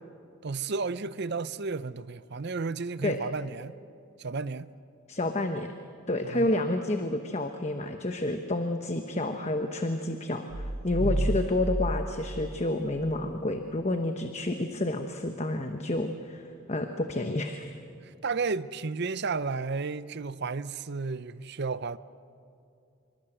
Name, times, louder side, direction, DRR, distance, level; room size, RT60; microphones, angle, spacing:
voice 1, 0.4-3.7 4.2-4.7 6.2-6.6 11.0-11.4 18.0-22.0, right 4 dB, 50° right, 0.6 m, -33 dB
voice 2, 5.1-5.7 6.1-17.7, left 1 dB, 30° left, 1.0 m, -30 dB
sound 1, 10.5-13.3, right 1 dB, 80° right, 1.9 m, -31 dB
26.0 x 24.5 x 7.9 m
head